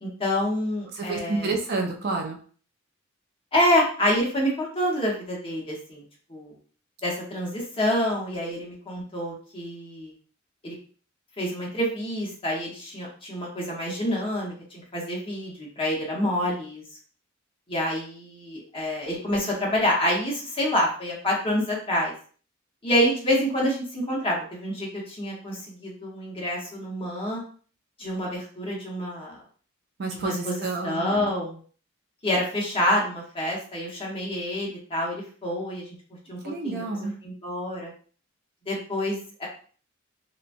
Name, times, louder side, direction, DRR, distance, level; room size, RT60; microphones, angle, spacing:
voice 1, 0.0-1.5 3.5-6.0 6.3-6.5 7.0-10.1 10.6-10.7 11.4-14.5 14.9-16.8 17.7-22.1 22.8-27.4 28.0-29.4 30.1-31.6 32.2-35.8 36.3-36.4 36.6-36.8 37.2-37.9 38.7-39.5, left 1 dB, 25° left, -3 dB, 0.9 m, -27 dB
voice 2, 0.9-2.4 30.0-31.3 36.4-37.1, right 3 dB, 50° right, 2 dB, 0.5 m, -29 dB
2.8 x 2.2 x 2.5 m, 0.43 s
head